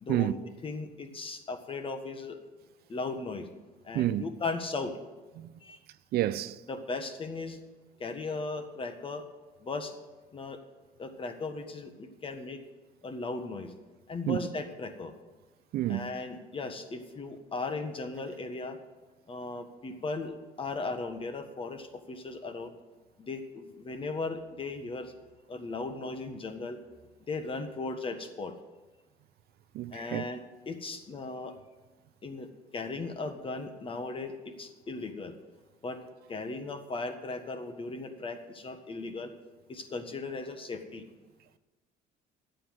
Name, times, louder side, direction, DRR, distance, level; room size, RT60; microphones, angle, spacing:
voice 1, 0.0-0.4 0.6-2.4 2.9-3.5 3.8-4.9 5.6-5.8 6.7-7.6 8.0-9.2 9.6-10.0 10.3-10.6 11.0-12.6 13.0-13.7 14.1-15.1 15.9-18.8 19.3-22.7 23.2-25.1 25.5-26.8 27.3-28.5 29.9-31.5 32.2-35.3 35.8-36.0 36.3-39.3 39.7-41.0, left 3 dB, 30° left, 1.5 m, -37 dB
voice 2, 6.1-6.6 14.3-14.4 15.7-16.1 29.7-30.2, right 14 dB, 70° right, 0.5 m, -29 dB
11.5 x 7.9 x 7.7 m
cardioid pair, 110°, 17 cm